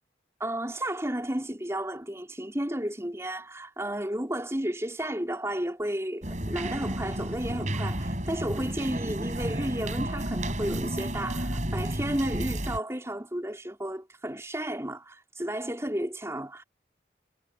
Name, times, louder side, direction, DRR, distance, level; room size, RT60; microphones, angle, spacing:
voice 1, 0.4-16.6, right 1 dB, 15° right, 4.8 m, -33 dB
sound 1, 6.2-12.8, right 1 dB, 40° right, 7.6 m, -31 dB
head